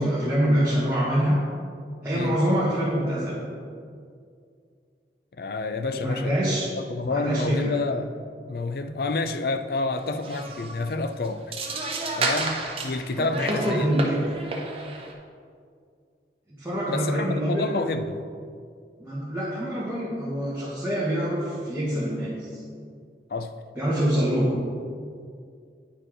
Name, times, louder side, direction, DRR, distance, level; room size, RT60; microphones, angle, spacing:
voice 1, 0.0-1.4 2.0-3.4 5.9-6.6 7.1-7.7 13.2-14.2 16.6-17.7 19.0-22.6 23.7-24.6, equal, 10° right, -10 dB, 1.4 m, -25 dB
voice 2, 5.4-6.4 6.8-8.1 8.4-11.4 12.2-13.9 16.9-18.2 23.3-23.6, left 3 dB, 55° left, 9 dB, 0.4 m, -29 dB
sound 1, 10.0-10.1 10.2-10.9 11.2-15.1, right 3 dB, 30° right, 0.8 m, -31 dB
9.3 x 4.5 x 5.0 m, 2.2 s
head